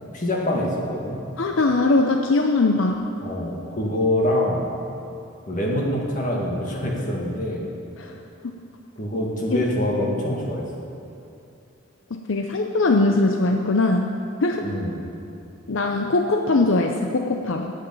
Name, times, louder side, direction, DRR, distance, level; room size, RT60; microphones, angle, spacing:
voice 1, 0.1-1.2 3.2-4.7 5.4-7.7 9.0-10.7 14.6-15.1, left 1 dB, 40° left, -2 dB, 1.9 m, -25 dB
voice 2, 1.4-3.1 8.0-8.2 9.5-9.6 12.1-14.1 14.4-14.6 15.7-17.7, left 2 dB, 70° left, 3 dB, 0.6 m, -21 dB
10.0 x 8.4 x 8.7 m, 2.7 s
head